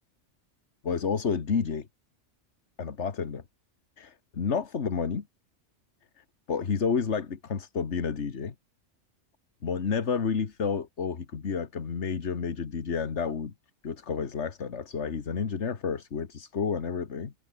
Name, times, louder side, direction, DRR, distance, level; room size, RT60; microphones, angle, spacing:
voice 1, 0.8-1.9 2.8-3.4 4.0-5.2 6.2-8.5 9.6-13.5 13.8-17.3, left 6 dB, 65° left, 1.8 m, -30 dB
omnidirectional pair, 1.3 m